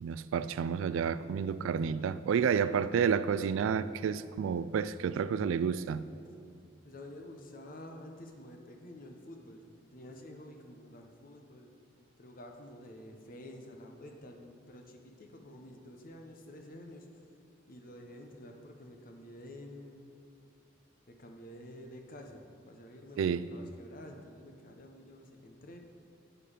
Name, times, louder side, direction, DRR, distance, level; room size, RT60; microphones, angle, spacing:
voice 1, 0.0-6.0 23.2-23.4, right 7 dB, 85° right, 0.3 m, -30 dB
voice 2, 2.4-2.8 6.8-11.7 12.2-17.3 17.7-20.1 21.1-25.8, left 1 dB, 45° left, 0.8 m, -50 dB
9.0 x 6.7 x 5.0 m
head